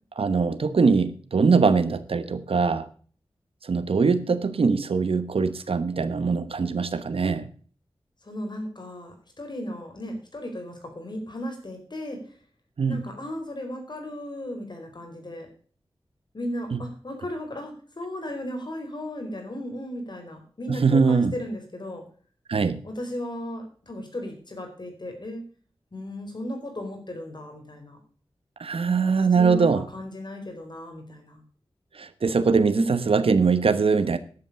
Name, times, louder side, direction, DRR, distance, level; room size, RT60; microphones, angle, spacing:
voice 1, 0.2-2.9 3.6-7.5 12.8-13.0 16.7-16.8 20.7-21.3 22.5-22.8 28.6-29.8 32.0-34.2, right 5 dB, 80° right, 13 dB, 1.0 m, -22 dB
voice 2, 8.2-12.2 12.9-15.5 16.3-22.0 22.8-25.4 25.9-28.0 29.0-31.4, equal, 50° left, 3 dB, 4.5 m, -35 dB
10.5 x 8.1 x 6.9 m, 0.44 s
cardioid pair, 50°, 9 cm